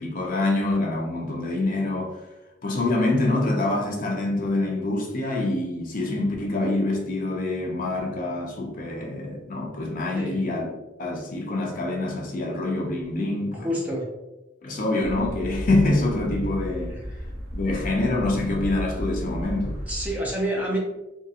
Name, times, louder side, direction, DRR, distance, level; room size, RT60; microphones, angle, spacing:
voice 1, 0.0-2.2 2.6-10.7 11.0-13.7 14.6-17.0 17.5-19.8, left 2 dB, 45° left, -1 dB, 0.5 m, -26 dB
voice 2, 13.5-14.1 16.9-17.2 19.9-20.8, equal, 10° right, -3 dB, 0.5 m, -28 dB
sound 1, 15.0-20.1, equal, 50° right, 1.0 m, -33 dB
2.8 x 2.7 x 2.4 m, 0.98 s
head